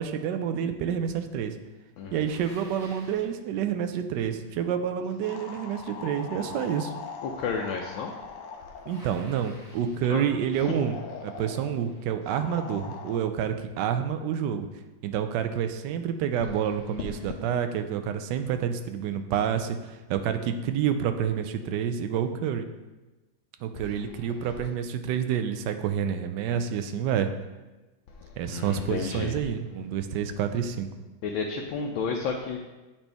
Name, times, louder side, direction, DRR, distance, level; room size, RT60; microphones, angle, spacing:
voice 1, 0.0-1.5 2.1-6.9 8.9-14.7 15.0-22.7 23.6-27.3 28.4-30.9, right 8 dB, 75° right, 8 dB, 1.1 m, -28 dB
voice 2, 2.0-2.3 7.2-8.1 10.1-10.2 10.6-10.9 23.7-23.9 24.4-24.5 28.4-29.4 31.2-32.6, left 5 dB, 90° left, 1 dB, 1.4 m, -32 dB
Bicycle, 2.2-3.3 8.9-10.1, equal, 55° right, 2.8 m, -50 dB
sound 1, 5.2-9.2 10.6-11.7 12.3-13.2, left 5 dB, 75° left, 1.3 m, -41 dB
8.8 x 4.3 x 3.4 m, 1.1 s
omnidirectional pair, 2.1 m